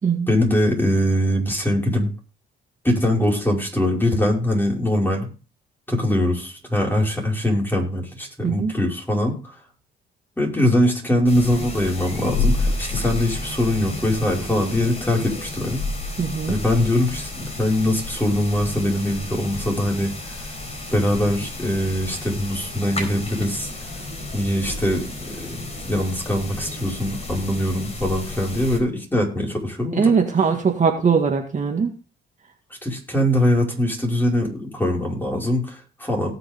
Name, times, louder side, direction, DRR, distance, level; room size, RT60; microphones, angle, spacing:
voice 1, 0.3-2.1 2.8-5.3 5.9-9.4 10.4-15.8 16.5-20.4 20.9-23.7 24.3-25.5 25.8-30.1 32.8-36.3, left 1 dB, 10° left, -1 dB, 5.4 m, -22 dB
voice 2, 8.4-8.7 16.2-16.6 29.9-32.0, right 6 dB, 40° right, 3 dB, 1.9 m, -20 dB
sound 1, 11.3-28.8, left 2 dB, 35° left, 4.5 m, -31 dB
18.0 x 7.0 x 3.6 m, 0.35 s
cardioid pair, 90°, 20 cm